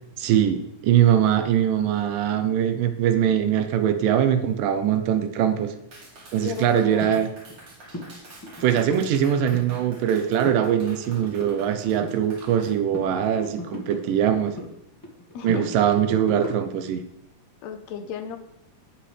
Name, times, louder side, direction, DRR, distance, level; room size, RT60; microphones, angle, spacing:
voice 1, 0.2-5.7 6.3-7.3 8.6-14.5 15.4-17.0, right 9 dB, 85° right, 9 dB, 2.4 m, -22 dB
Clapping, 5.9-12.7, right 2 dB, 50° right, 3.2 m, -47 dB
voice 2, 6.4-7.3 15.3-15.8 17.6-18.4, left 7 dB, 75° left, 7 dB, 1.7 m, -35 dB
sound 1, 7.0-7.1 7.5-7.7 7.9-8.1 8.4-9.7 10.0-10.6 10.9-12.7 12.9-14.7 15.0-16.9, left 1 dB, 25° left, 0.4 m, -36 dB
17.0 x 5.8 x 3.3 m, 0.81 s
omnidirectional pair, 3.8 m